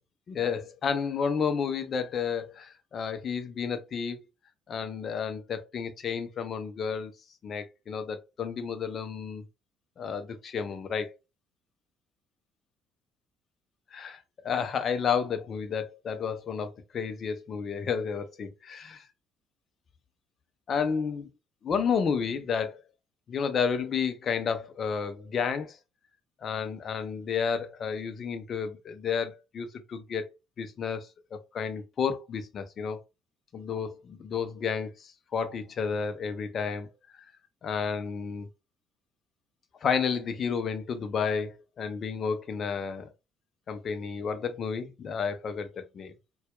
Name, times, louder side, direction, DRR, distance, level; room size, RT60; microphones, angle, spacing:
voice 1, 0.3-4.2 4.7-7.1 7.4-9.4 10.0-11.1 13.9-19.0 20.7-21.3 21.6-22.8 23.3-25.8 26.4-30.3 30.6-33.0 33.5-36.9 37.6-38.5 39.8-43.1 43.7-46.1, left 6 dB, 45° left, 0.7 m, -31 dB
4.2 x 2.3 x 2.4 m
figure-of-eight pair, 50°, 0 cm